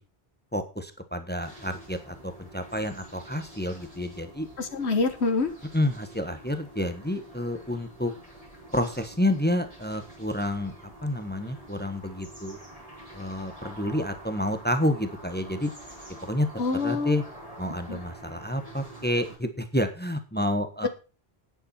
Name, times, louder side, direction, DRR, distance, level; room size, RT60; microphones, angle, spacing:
voice 1, 0.5-4.5 5.7-8.1 8.7-10.7 11.0-12.6 13.1-15.7 16.2-16.5 16.8-17.2 17.6-20.9, left 1 dB, 10° left, 8 dB, 1.2 m, -29 dB
sound 1, 1.4-19.4, right 1 dB, 35° right, 4.9 m, -47 dB
voice 2, 4.6-5.5 16.6-17.2 17.9-18.0 20.8-20.9, left 3 dB, 90° left, 7 dB, 1.6 m, -26 dB
9.9 x 9.9 x 4.3 m, 0.32 s
omnidirectional pair, 1.1 m